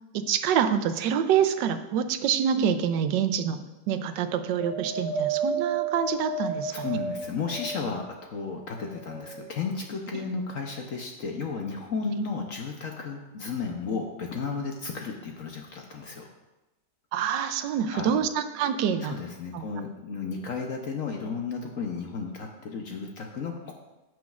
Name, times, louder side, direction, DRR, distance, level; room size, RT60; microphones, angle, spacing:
voice 1, 0.1-6.7 17.1-19.1 19.5-19.6, right 8 dB, 80° right, 10 dB, 1.3 m, -26 dB
Wind, 4.6-8.1 8.7-9.7 10.5-10.6, right 4 dB, 75° left, 2.3 m, -32 dB
voice 2, 6.5-16.2 17.9-18.1 19.0-23.7, left 4 dB, 55° left, 1 dB, 1.1 m, -33 dB
15.0 x 6.2 x 2.4 m, 1.0 s
omnidirectional pair, 1.9 m